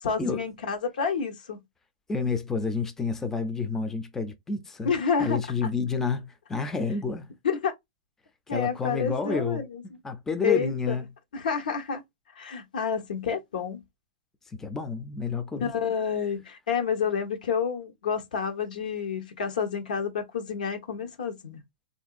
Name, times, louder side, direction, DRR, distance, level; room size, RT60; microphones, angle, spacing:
voice 1, 0.0-1.6 4.8-5.4 7.4-7.7 8.5-9.8 10.4-11.0 11.3-12.0 12.4-13.8 15.6-21.6, left 6 dB, 80° left, 1.1 m, -29 dB
voice 2, 2.1-4.9 5.2-7.3 8.5-11.0 14.5-15.7, left 4 dB, 10° left, 0.4 m, -30 dB
3.7 x 2.6 x 2.5 m
hypercardioid pair, 150°, 4 cm